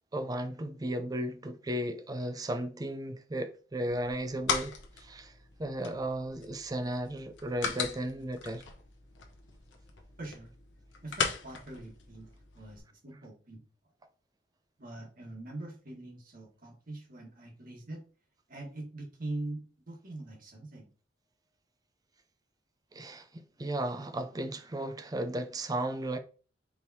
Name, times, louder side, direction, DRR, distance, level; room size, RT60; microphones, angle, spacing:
voice 1, 0.1-5.3 5.6-8.6 22.9-26.2, right 1 dB, 20° right, 0.4 m, -35 dB
sound 1, 3.9-12.8, left 5 dB, 85° left, 0.8 m, -39 dB
voice 2, 10.2-10.5 11.0-13.6 14.8-18.0 18.5-20.9, right 2 dB, 50° right, 1.5 m, -43 dB
4.5 x 3.4 x 2.8 m
head